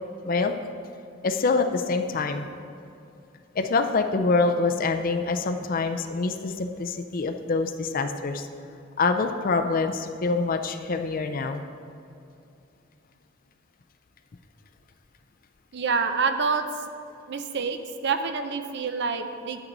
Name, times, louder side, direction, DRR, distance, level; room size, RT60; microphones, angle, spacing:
voice 1, 0.2-0.5 1.2-2.4 3.5-8.5 9.0-11.6, left 3 dB, 45° left, 6 dB, 0.5 m, -25 dB
voice 2, 15.7-16.7 17.3-19.6, right 5 dB, 55° right, 8 dB, 0.6 m, -27 dB
9.6 x 8.8 x 4.0 m, 2.6 s
head